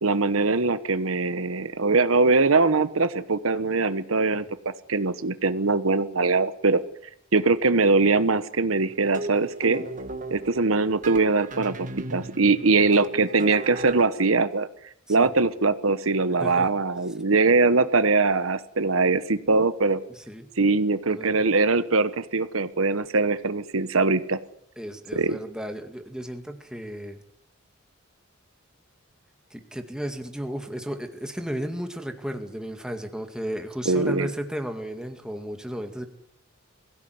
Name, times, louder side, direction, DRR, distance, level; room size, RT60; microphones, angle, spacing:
voice 1, 0.0-4.4 4.9-6.8 7.3-9.8 10.3-14.7 15.1-20.0 20.6-24.4 25.1-25.4 33.8-34.3, right 3 dB, 85° right, 13 dB, 1.2 m, -22 dB
sound 1, 8.8-14.0, right 2 dB, 40° right, 1.6 m, -37 dB
voice 2, 24.8-27.2 29.5-36.1, equal, 5° right, 5 dB, 2.2 m, -34 dB
22.5 x 16.5 x 9.5 m, 0.73 s
head